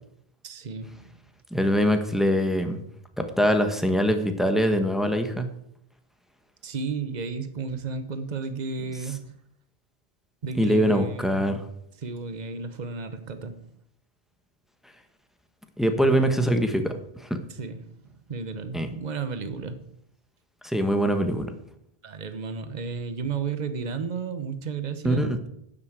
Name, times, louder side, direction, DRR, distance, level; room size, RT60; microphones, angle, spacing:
voice 1, 0.4-1.1 6.6-9.3 10.4-11.5 12.0-13.6 16.0-16.3 17.5-17.9 18.3-19.9 22.0-25.4, right 5 dB, 45° right, 10 dB, 1.1 m, -33 dB
voice 2, 1.5-2.8 3.2-5.5 10.5-11.6 15.8-16.9 17.2-17.3 18.7-18.9 20.6-21.5 25.0-25.4, equal, ahead, 6 dB, 1.3 m, -23 dB
9.6 x 8.0 x 8.0 m, 0.73 s
omnidirectional pair, 1.0 m